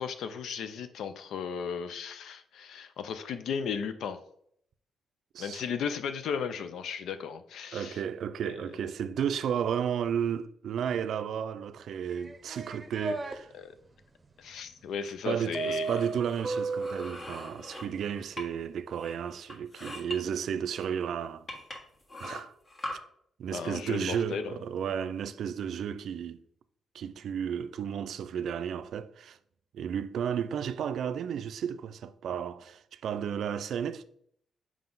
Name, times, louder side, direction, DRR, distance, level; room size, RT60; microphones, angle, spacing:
voice 1, 0.0-4.2 5.4-8.0 8.5-8.6 13.5-13.7 14.4-15.9 23.5-24.6, left 6 dB, 85° left, 0.4 m, -35 dB
voice 2, 7.7-13.5 15.2-21.5 22.2-22.5 23.4-26.4 26.9-29.4 29.7-34.0, right 8 dB, 75° right, 0.4 m, -33 dB
sound 1, 12.1-13.4 15.5-17.2, right 4 dB, 25° right, 0.7 m, -34 dB
sound 2, 15.5-18.7 19.0-20.2 20.8-20.9 21.5-22.9, left 1 dB, 40° left, 1.5 m, -42 dB
5.7 x 4.8 x 3.9 m
cardioid pair, 100°, 0 cm